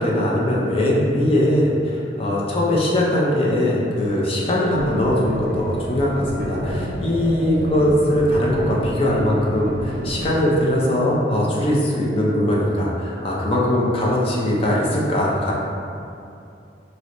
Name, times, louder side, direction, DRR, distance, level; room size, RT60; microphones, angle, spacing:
voice 1, 0.0-15.5, left 1 dB, 30° left, -5 dB, 0.5 m, -20 dB
sound 1, 4.8-10.3, equal, 60° right, 0.5 m, -29 dB
4.4 x 2.1 x 2.5 m, 2.6 s
head